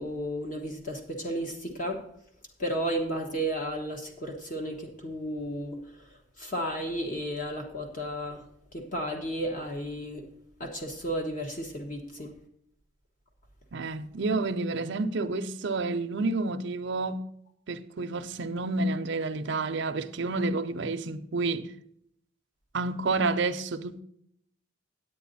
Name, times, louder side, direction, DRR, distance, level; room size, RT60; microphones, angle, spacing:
voice 1, 0.0-2.0 2.6-5.8 6.4-8.4 8.7-10.2 10.6-12.3, equal, 40° left, 1.2 m, -33 dB
voice 2, 13.7-17.3 17.7-21.7 22.7-24.0, right 3 dB, 60° right, 0.6 m, -29 dB
9.2 x 9.1 x 4.1 m
head